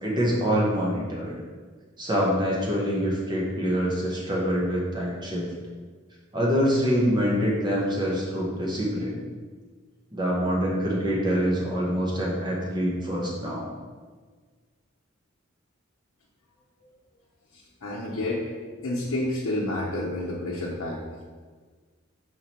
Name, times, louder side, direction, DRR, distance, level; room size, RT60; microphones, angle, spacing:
voice 1, 0.0-1.3 2.0-5.5 6.3-9.1 10.1-13.7, equal, 20° right, -4 dB, 1.1 m, -25 dB
voice 2, 17.5-18.5 18.8-21.0, left 1 dB, 85° left, -5 dB, 0.8 m, -29 dB
5.0 x 4.4 x 4.3 m, 1.5 s
head